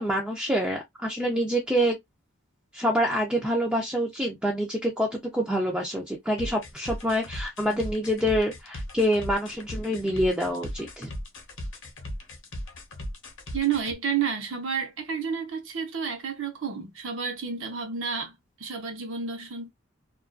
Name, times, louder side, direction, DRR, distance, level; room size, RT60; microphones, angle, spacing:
voice 1, 0.0-2.0 2.7-11.1, equal, 5° right, 0.4 m, -26 dB
sound 1, 6.4-13.9, left 1 dB, 60° left, 0.8 m, -37 dB
voice 2, 13.5-18.3 18.6-19.7, right 6 dB, 70° right, 0.7 m, -30 dB
2.3 x 2.3 x 2.4 m
head